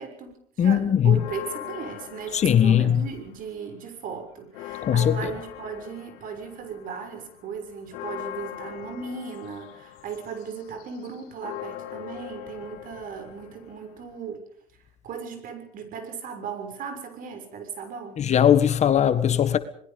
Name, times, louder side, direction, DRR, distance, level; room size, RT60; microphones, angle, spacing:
voice 1, 0.0-14.4 15.0-18.2, right 6 dB, 50° right, 6.4 m, -37 dB
voice 2, 0.6-1.2 2.3-3.0 4.8-5.3 18.2-19.6, left 9 dB, 40° left, 1.6 m, -19 dB
sound 1, 1.1-3.5 3.9-14.4, left 12 dB, 75° left, 2.9 m, -41 dB
27.5 x 21.0 x 5.3 m
supercardioid pair, 95°, 18 cm